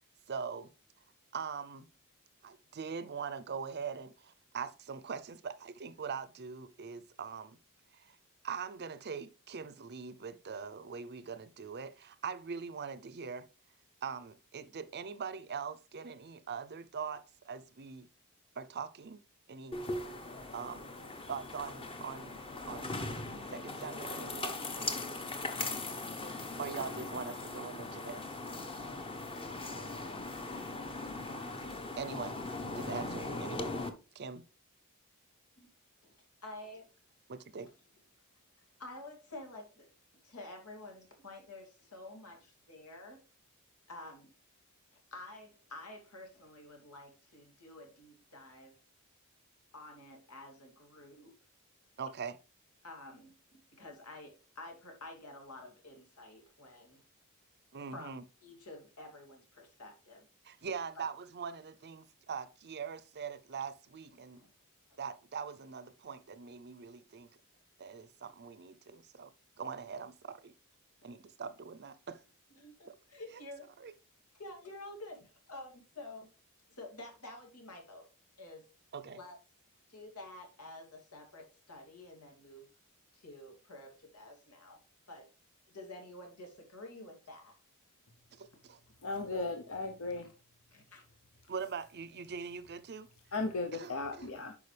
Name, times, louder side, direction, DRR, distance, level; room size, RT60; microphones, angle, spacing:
voice 1, 0.3-0.7 1.3-1.9 2.4-7.6 7.9-8.2 8.4-13.5 14.0-18.1 18.6-19.2 19.5-19.8 20.5-20.9 21.3-22.4 22.7-22.9 23.5-24.6 26.6-28.3 32.0-32.4 32.7-33.7 34.1-34.4 37.3-37.7 52.0-52.4 57.7-58.2 60.4-64.4 65.0-67.3 67.8-69.3 69.6-70.5 71.0-72.2 72.9-73.0 73.8-73.9 78.9-79.2 91.5-93.1 93.7-94.3, right 6 dB, 50° right, 0.6 m, -42 dB
sound 1, 19.7-33.9, left 2 dB, 25° left, 0.9 m, -40 dB
voice 2, 36.4-36.9 38.8-39.9 40.2-43.2 43.9-44.3 45.1-48.7 49.7-51.4 52.8-57.0 57.9-58.1 58.4-60.3 61.0-61.1 64.3-64.5 64.9-65.0 72.6-73.7 74.3-76.3 76.7-78.1 78.4-78.6 79.1-79.4 79.9-82.7 83.1-84.8 85.1-85.3 85.7-87.5 90.7-91.0, left 2 dB, 85° left, 2.8 m, -49 dB
voice 3, 89.0-90.3 93.3-94.5, left 3 dB, 65° left, 0.9 m, -36 dB
11.0 x 5.0 x 3.3 m
head